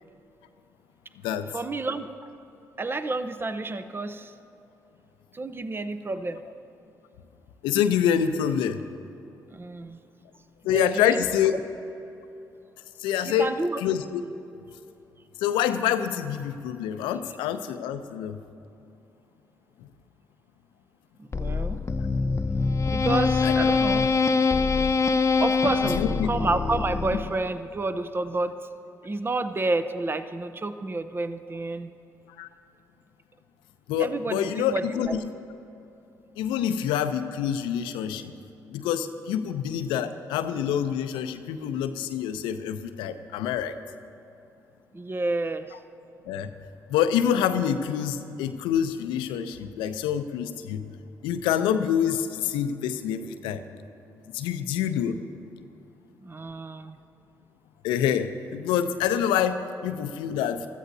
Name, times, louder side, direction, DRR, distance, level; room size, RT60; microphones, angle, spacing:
voice 1, 1.5-2.1 2.8-4.3 5.3-6.4 9.5-10.0 10.7-11.2 13.4-13.8 21.2-21.8 22.9-24.1 25.4-28.6 29.0-31.9 34.0-35.2 44.9-45.7 56.2-57.0, right 2 dB, 25° right, 10 dB, 0.7 m, -30 dB
voice 2, 7.6-8.8 10.6-11.5 13.0-13.5 13.8-14.2 15.4-18.4 23.4-23.5 25.8-26.3 32.4-32.5 33.9-35.2 36.4-38.3 38.7-43.7 46.3-46.5 46.9-50.9 51.2-53.6 54.3-55.2 57.8-60.7, left 9 dB, 80° left, 10 dB, 0.6 m, -26 dB
sound 1, 21.3-27.6, left 4 dB, 35° left, 0.7 m, -24 dB
21.0 x 14.0 x 2.7 m, 2.8 s
hypercardioid pair, 45°, 8 cm